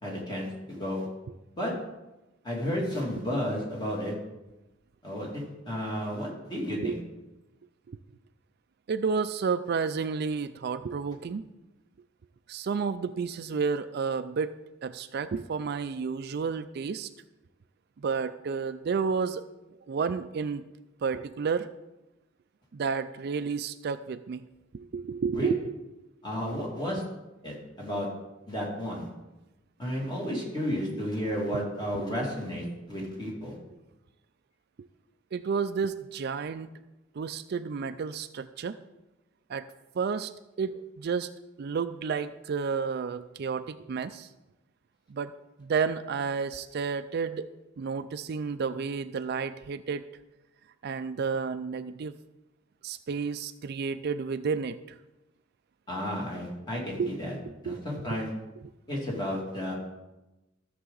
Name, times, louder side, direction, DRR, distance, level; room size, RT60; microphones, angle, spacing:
voice 1, 0.0-1.1 1.6-1.7 2.4-4.1 5.0-7.0 25.3-25.5 26.2-27.0 27.4-28.1 28.5-29.1 29.8-33.5 55.9-57.3 57.6-58.3 58.9-59.7, equal, 20° left, -3 dB, 2.5 m, -32 dB
voice 2, 8.9-11.4 12.5-14.6 14.8-17.1 18.0-19.4 19.9-20.6 21.0-21.7 22.7-24.4 24.7-25.6 35.3-36.7 37.2-38.8 39.5-39.7 40.0-40.3 40.6-41.3 41.6-44.3 45.1-45.3 45.6-47.5 47.8-50.0 50.8-52.1 52.8-54.8 57.0-57.2 57.5-57.8, right 5 dB, 55° right, 11 dB, 0.4 m, -31 dB
14.0 x 6.8 x 3.9 m, 1.0 s
head